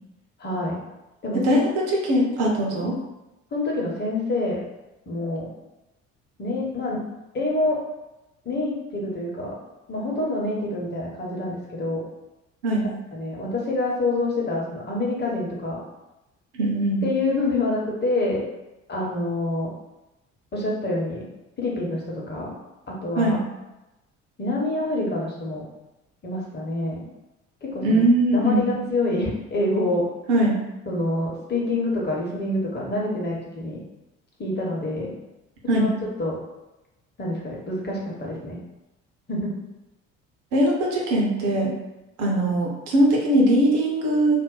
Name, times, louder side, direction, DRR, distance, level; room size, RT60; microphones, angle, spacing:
voice 1, 0.4-0.8 1.2-1.6 3.5-4.6 5.1-5.5 6.4-7.0 7.3-7.8 8.4-9.6 9.9-12.0 13.1-15.8 17.0-18.4 18.9-19.7 20.5-21.2 21.6-22.6 22.9-23.4 24.4-25.6 26.2-27.1 27.6-28.0 28.3-30.1 30.9-33.8 34.4-35.1 35.6-35.9 36.2-36.4 37.2-38.6 39.3-39.5, left 2 dB, 25° left, -3 dB, 1.0 m, -26 dB
voice 2, 1.3-2.9 12.6-12.9 16.5-17.0 23.1-23.4 27.8-28.7 30.3-30.6 35.7-35.9 40.5-41.7 42.2-44.4, right 1 dB, 55° right, -2 dB, 0.9 m, -21 dB
2.7 x 2.1 x 3.8 m, 0.99 s
figure-of-eight pair, 50°, 37 cm